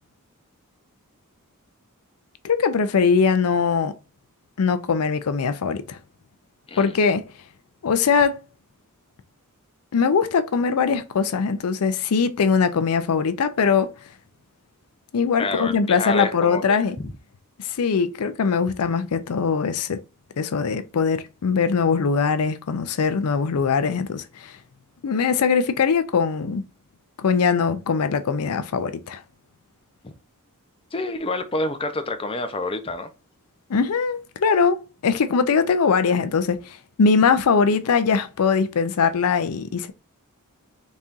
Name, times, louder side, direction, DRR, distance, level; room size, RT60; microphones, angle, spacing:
voice 1, 2.4-3.9 4.6-6.0 6.8-7.3 7.8-8.4 9.9-13.9 15.1-17.0 17.6-20.0 20.4-24.5 25.0-26.6 27.2-29.2 33.7-39.9, left 5 dB, 75° left, 0.5 m, -21 dB
voice 2, 15.4-16.8 30.0-30.1 30.9-33.1, left 2 dB, 25° left, 0.6 m, -28 dB
4.2 x 3.5 x 2.5 m
head